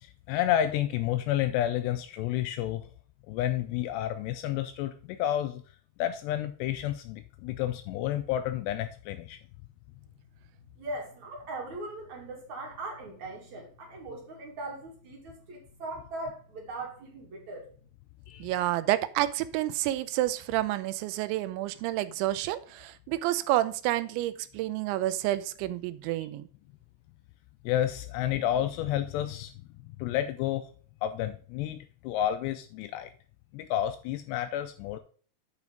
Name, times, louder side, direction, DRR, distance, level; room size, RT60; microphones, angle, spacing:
voice 1, 0.0-2.9 3.3-5.6 6.0-9.4 18.3-18.5 27.6-29.5 29.8-30.7 31.0-33.1 33.5-35.0, left 12 dB, 85° left, 9 dB, 2.5 m, -30 dB
voice 2, 10.8-17.7, right 2 dB, 50° right, -1 dB, 2.7 m, -40 dB
voice 3, 18.4-26.5, right 15 dB, 85° right, 14 dB, 2.9 m, -29 dB
8.4 x 4.9 x 5.0 m, 0.43 s
omnidirectional pair, 5.2 m